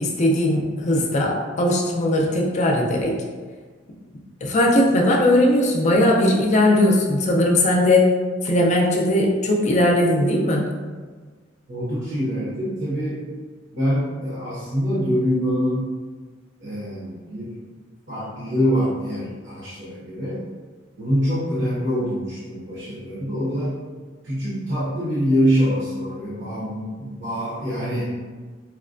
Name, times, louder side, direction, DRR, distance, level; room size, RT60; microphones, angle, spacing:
voice 1, 0.0-3.2 4.4-8.1 8.4-10.7, left 1 dB, 40° left, -1 dB, 0.5 m, -19 dB
voice 2, 11.7-13.2 13.7-15.9 16.6-17.6 18.1-20.5 21.0-23.8 24.2-28.1, equal, 65° right, -9 dB, 0.9 m, -24 dB
4.6 x 2.2 x 2.5 m, 1.4 s
head